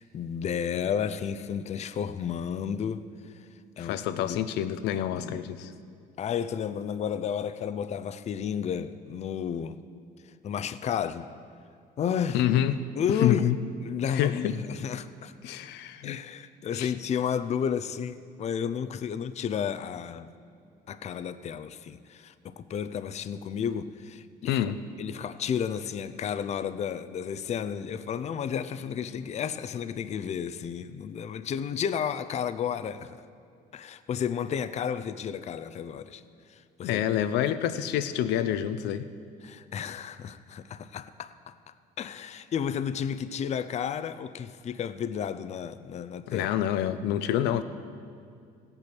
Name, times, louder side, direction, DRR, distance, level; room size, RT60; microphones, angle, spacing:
voice 1, 0.0-3.5 3.8-4.4 5.2-5.4 6.2-9.8 10.4-11.3 12.0-12.4 13.0-13.5 13.8-15.3 16.0-20.3 20.9-24.6 25.0-33.2 33.7-36.2 36.5-37.0 39.4-41.5 42.0-46.5, left 8 dB, 40° left, 0.5 m, -32 dB
voice 2, 3.8-5.7 12.3-13.6 14.1-14.6 15.4-16.2 16.7-16.9 24.5-24.8 36.8-39.1 46.3-47.6, left 11 dB, 90° left, 0.6 m, -27 dB
16.5 x 8.8 x 6.1 m
cardioid pair, 110°, 17 cm